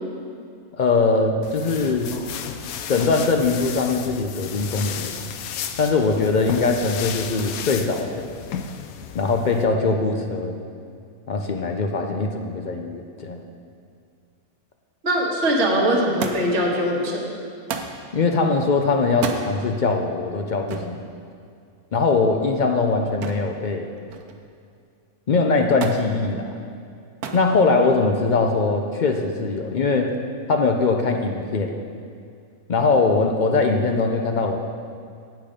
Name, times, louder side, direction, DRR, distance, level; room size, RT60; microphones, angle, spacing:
voice 1, 0.7-2.1 2.9-5.1 5.8-8.3 9.1-10.5 11.3-13.4 18.1-21.1 21.9-23.9 25.3-26.5 27.3-30.2 30.5-31.7 32.7-34.6, left 3 dB, 60° left, 3 dB, 0.5 m, -21 dB
sound 1, 1.4-9.7, left 8 dB, 75° left, 1.0 m, -34 dB
voice 2, 15.0-17.3, equal, 50° right, -3 dB, 1.5 m, -21 dB
Thump thud, 16.2-16.7 17.7-18.0 19.1-19.5 20.7-21.0 23.2-23.5 23.9-24.4 25.8-26.1 27.2-27.5 28.4-28.9 29.9-30.0, right 5 dB, 85° right, 1.2 m, -30 dB
8.6 x 8.1 x 5.1 m, 2.3 s
omnidirectional pair, 1.6 m